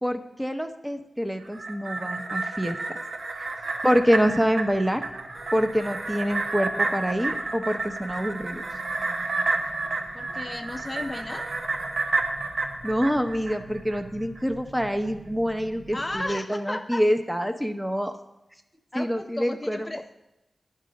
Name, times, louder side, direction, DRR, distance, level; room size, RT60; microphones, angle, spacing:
voice 1, 0.0-3.0 3.4-3.5 3.8-5.0 5.5-8.6 12.8-18.1 18.9-19.9, equal, 10° right, 7 dB, 0.7 m, -26 dB
sound 1, 1.4-14.0 14.4-14.5, right 3 dB, 65° right, 0.9 m, -30 dB
sound 2, 3.0-16.3, right 1 dB, 85° right, 2.0 m, -48 dB
voice 2, 10.1-11.5 15.9-17.0 18.9-20.0, left 1 dB, 25° left, 7 dB, 0.3 m, -34 dB
11.0 x 3.8 x 5.2 m, 0.93 s
cardioid pair, 55°, 0 cm